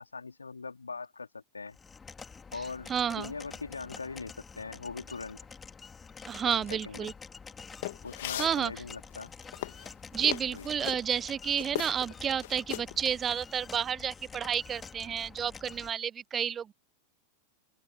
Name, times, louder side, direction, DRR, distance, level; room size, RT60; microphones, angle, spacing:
voice 1, 0.0-1.8 2.5-5.4 6.4-7.1 8.0-9.3 10.5-10.7, left 4 dB, 75° left, 3.5 m, -41 dB
sound 1, 1.7-15.9, left 5 dB, 15° left, 3.1 m, -48 dB
voice 2, 2.9-3.3 6.3-7.1 8.4-8.7 10.1-16.7, right 8 dB, 25° right, 0.7 m, -31 dB
sound 2, 7.8-8.6 9.2-11.0 11.6-12.1 12.4-13.0, left 16 dB, 55° left, 2.5 m, -37 dB
open air
figure-of-eight pair, 90°, 0 cm